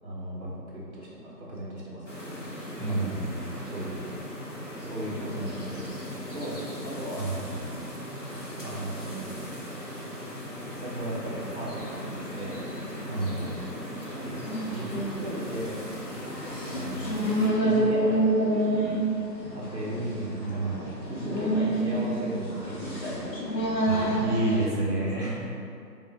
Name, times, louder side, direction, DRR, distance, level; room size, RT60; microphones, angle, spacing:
voice 1, 0.0-3.3 3.7-4.0 4.8-6.6 6.8-7.2 8.2-8.3 8.6-9.4 10.8-12.6 13.1-13.6 14.1-15.8 16.7-18.3 19.5-23.4 23.7-23.8, right 1 dB, 40° right, -7 dB, 0.9 m, -37 dB
sound 1, 2.1-17.5, equal, 50° left, 0.7 m, -38 dB
voice 2, 2.8-3.4 7.2-7.4 13.1-13.6 20.0-20.8 23.9-25.4, right 2 dB, 65° right, -4 dB, 0.9 m, -30 dB
sound 2, 14.5-24.7, right 1 dB, 80° left, 1.1 m, -28 dB
3.6 x 3.3 x 3.2 m, 2.5 s
figure-of-eight pair, 175°, 50 cm